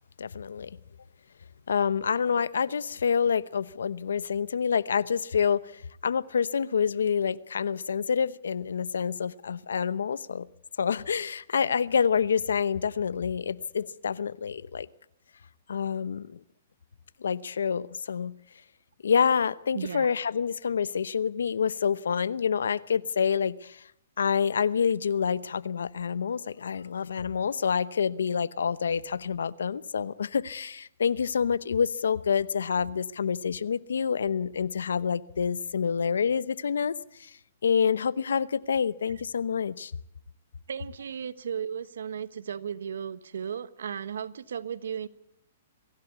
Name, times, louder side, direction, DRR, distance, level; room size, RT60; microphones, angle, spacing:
voice 1, 0.2-0.7 1.7-10.5 10.8-14.9 15.7-16.4 17.2-18.3 19.0-23.8 24.2-36.9 37.2-37.3 37.6-39.9, left 6 dB, 85° left, 0.8 m, -27 dB
voice 2, 19.7-20.1 40.7-45.1, right 8 dB, 75° right, 1.2 m, -35 dB
23.5 x 16.5 x 8.2 m
hypercardioid pair, 135°, 0 cm